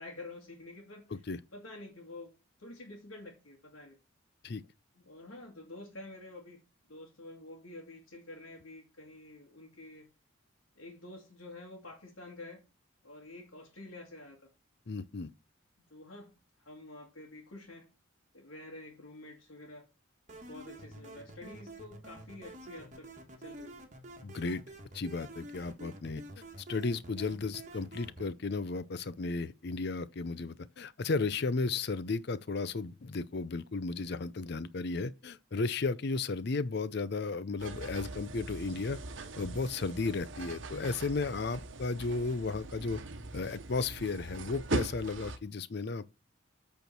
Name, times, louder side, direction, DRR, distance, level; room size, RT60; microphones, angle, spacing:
voice 1, 0.0-1.2 1.5-2.3 2.6-4.0 4.9-6.6 6.9-10.1 10.8-12.6 13.0-14.5 15.8-16.3 16.6-17.9 18.3-19.9 20.4-23.1 23.4-23.8, left 2 dB, 90° left, 2.3 m, -48 dB
voice 2, 14.9-15.3 24.2-24.6 24.9-26.4 26.7-39.0 39.4-43.0 43.3-46.0, left 3 dB, 55° left, 0.5 m, -34 dB
sound 1, 20.3-28.3, right 1 dB, 40° right, 1.5 m, -49 dB
sound 2, 37.6-45.4, right 3 dB, 70° right, 1.0 m, -41 dB
8.3 x 4.5 x 6.0 m
head